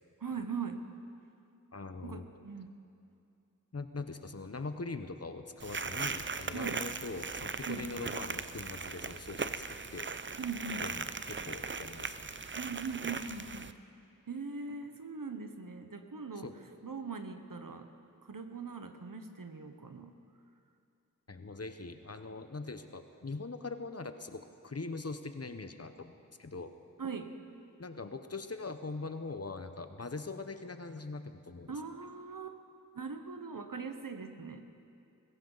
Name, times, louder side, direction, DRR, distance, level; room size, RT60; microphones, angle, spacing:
voice 1, 0.2-0.9 2.0-2.7 6.5-6.8 7.7-7.9 10.4-10.8 12.5-13.7 14.3-16.5 16.8-17.9 18.2-20.2 27.0-27.3 31.7-32.6 32.9-34.6, right 5 dB, 75° right, 7 dB, 1.1 m, -41 dB
voice 2, 1.7-2.3 3.7-9.6 9.9-10.1 10.8-12.4 16.4-16.5 21.3-26.1 26.4-26.7 27.8-31.7, left 3 dB, 45° left, 8 dB, 0.9 m, -42 dB
sound 1, 5.6-13.7, right 4 dB, 35° right, 0.5 m, -39 dB
20.0 x 16.5 x 4.0 m, 2.6 s
wide cardioid pair, 50°, 33 cm